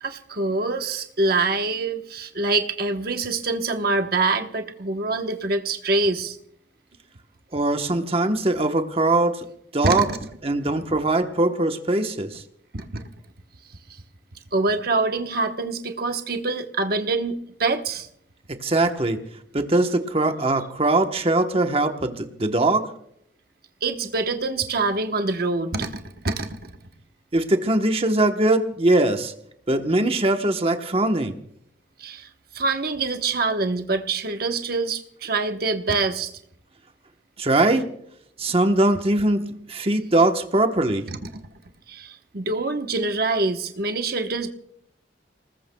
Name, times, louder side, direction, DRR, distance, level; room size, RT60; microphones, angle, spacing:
voice 1, 0.0-6.4 9.8-10.2 12.7-13.0 13.9-14.0 14.5-18.1 23.8-26.7 32.0-32.3 32.5-36.3 41.1-41.2 41.9-44.5, right 3 dB, 55° right, 6 dB, 1.1 m, -25 dB
voice 2, 7.5-9.4 9.7-10.1 10.4-12.4 18.5-19.2 19.5-22.8 27.3-29.3 29.7-31.3 37.4-37.8 38.4-41.0, right 2 dB, 30° right, 6 dB, 1.1 m, -21 dB
29.5 x 19.5 x 2.3 m, 0.71 s
head